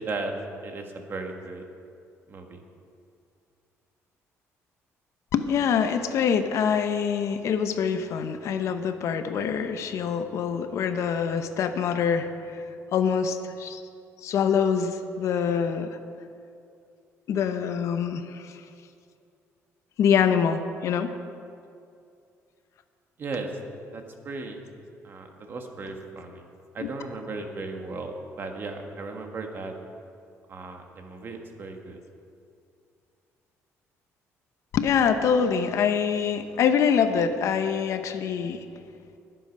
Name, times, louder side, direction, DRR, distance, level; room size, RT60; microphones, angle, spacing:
voice 1, 0.0-1.6 2.3-2.6 23.2-23.5 23.9-24.6 25.0-26.5 26.7-29.7 30.5-32.0, right 3 dB, 40° right, 3 dB, 1.6 m, -36 dB
voice 2, 5.3-12.6 12.9-13.8 14.2-16.0 17.3-18.6 20.0-21.1 25.8-25.9 26.8-26.9 34.7-38.6, left 7 dB, 65° left, 8 dB, 0.8 m, -25 dB
20.5 x 7.9 x 5.3 m, 2.5 s
cardioid pair, 130°, 6 cm